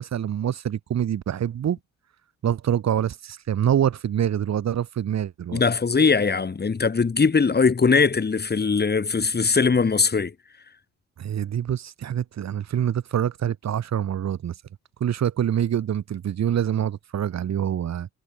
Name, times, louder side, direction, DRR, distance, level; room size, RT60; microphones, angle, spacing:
voice 1, 0.0-1.8 2.4-5.6 11.2-14.5 15.0-18.1, right 10 dB, 60° right, 3.5 m, -25 dB
voice 2, 5.5-10.3, left 5 dB, 35° left, 7.7 m, -20 dB
cardioid pair, 90°, 30 cm